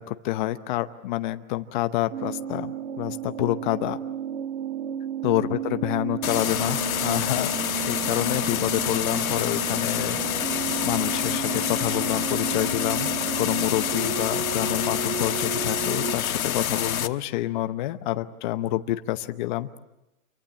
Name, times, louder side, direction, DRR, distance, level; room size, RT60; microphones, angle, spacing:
voice 1, 0.0-4.0 5.2-7.5 7.9-10.2 10.8-19.7, left 15 dB, 35° left, 11 dB, 0.8 m, -28 dB
sound 1, 2.1-16.2, right 9 dB, 65° right, 1.7 m, -33 dB
sound 2, 6.2-17.1, left 9 dB, 85° left, 1.4 m, -27 dB
27.5 x 23.5 x 7.3 m, 0.95 s
hypercardioid pair, 145°, 41 cm